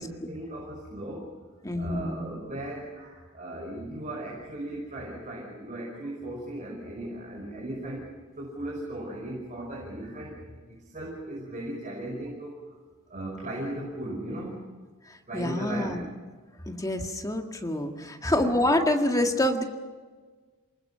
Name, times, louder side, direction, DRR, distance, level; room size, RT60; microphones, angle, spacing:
voice 1, 0.0-1.4 1.8-8.1 8.4-12.5 13.1-14.6 15.3-16.0 18.3-18.6, right 1 dB, 35° right, -2 dB, 5.7 m, -37 dB
voice 2, 1.6-2.2 15.1-16.1 16.7-19.6, left 1 dB, 15° left, 3 dB, 1.9 m, -27 dB
28.0 x 20.0 x 5.8 m, 1.4 s
head